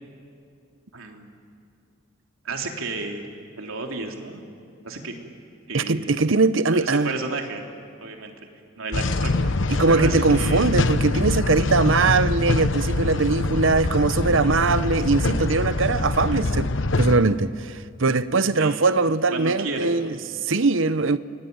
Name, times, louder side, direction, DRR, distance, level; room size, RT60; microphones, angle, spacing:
voice 1, 0.9-1.3 2.4-3.2 3.6-4.4 4.8-5.1 5.7-6.3 6.7-7.6 8.0-8.3 8.8-9.5 9.9-10.8 18.6-18.8 19.3-20.2, right 3 dB, 85° right, 3.2 m, -32 dB
voice 2, 5.7-7.1 9.7-16.7 17.0-21.2, right 3 dB, 70° right, 0.8 m, -21 dB
sound 1, 8.9-17.2, left 2 dB, 65° left, 1.0 m, -24 dB
28.5 x 21.0 x 9.5 m
head